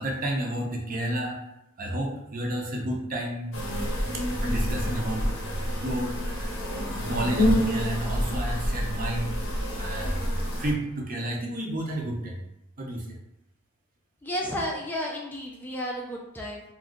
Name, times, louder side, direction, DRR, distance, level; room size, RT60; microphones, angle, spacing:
voice 1, 0.0-1.4 1.8-3.6 4.1-5.3 5.7-6.6 6.9-9.4 9.8-12.4 12.8-13.1, right 1 dB, 40° right, 0 dB, 0.5 m, -31 dB
sound 1, 3.5-10.7, equal, 80° left, 0.7 m, -28 dB
voice 2, 14.2-16.6, equal, 10° left, -2 dB, 0.3 m, -32 dB
2.5 x 2.3 x 3.6 m, 0.86 s
head